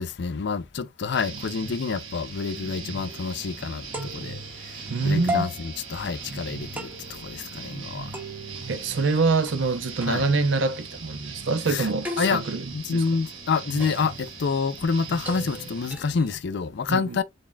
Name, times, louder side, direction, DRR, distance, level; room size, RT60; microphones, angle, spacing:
voice 1, 0.0-8.1 10.1-10.2 11.7-11.9 12.2-12.4 12.7-17.2, left 5 dB, 60° left, 0.4 m, -28 dB
sound 1, 1.1-15.9, right 4 dB, 90° right, 1.2 m, -39 dB
sound 2, 3.1-16.3, left 1 dB, 10° right, 1.1 m, -39 dB
voice 2, 4.9-5.5 8.7-13.0 16.9-17.2, right 3 dB, 70° right, 0.6 m, -25 dB
3.9 x 3.5 x 2.2 m
head